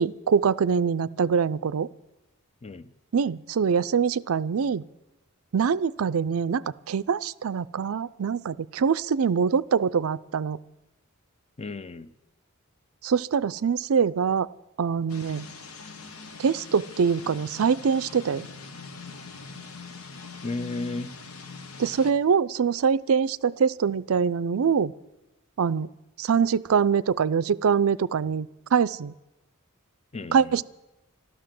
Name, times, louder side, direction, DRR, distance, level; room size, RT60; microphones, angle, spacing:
voice 1, 0.0-1.9 3.1-4.8 5.5-10.6 13.0-14.5 14.8-15.5 16.4-18.5 21.8-24.9 25.6-25.9 26.2-29.1 30.3-30.6, right 6 dB, 75° right, 17 dB, 0.4 m, -24 dB
voice 2, 2.6-2.9 11.6-12.1 20.4-21.1 30.1-30.6, left 2 dB, 30° left, 14 dB, 0.6 m, -34 dB
sound 1, 15.1-22.1, left 4 dB, 80° left, 1.3 m, -42 dB
13.5 x 12.5 x 7.6 m, 1.0 s
head